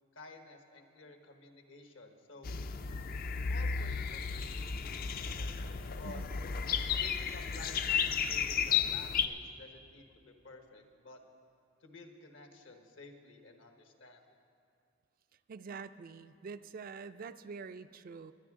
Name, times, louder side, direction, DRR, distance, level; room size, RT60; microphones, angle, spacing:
voice 1, 0.1-2.5 3.5-5.6 6.0-6.2 7.0-11.2 11.8-14.2, left 2 dB, 75° left, 5 dB, 1.2 m, -53 dB
sound 1, 2.4-9.3, left 6 dB, 50° left, 0.4 m, -33 dB
voice 2, 15.5-18.3, right 5 dB, 50° right, 12 dB, 0.4 m, -45 dB
21.5 x 9.9 x 3.7 m, 2.4 s
head